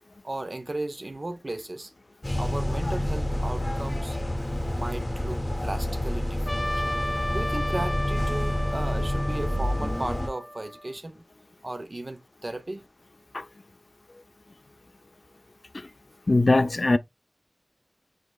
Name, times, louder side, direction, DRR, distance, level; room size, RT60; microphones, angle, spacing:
voice 1, 0.2-1.9 2.3-4.2 4.6-6.7 7.3-11.3 11.6-12.9, right 2 dB, 60° right, 0.6 m, -35 dB
sound 1, 2.2-10.3, left 1 dB, 30° left, 0.8 m, -28 dB
Trumpet, 6.5-10.9, equal, 5° left, 1.0 m, -34 dB
voice 2, 16.3-17.0, left 2 dB, 70° left, 0.4 m, -20 dB
6.3 x 2.9 x 2.2 m
wide cardioid pair, 45°, 0 cm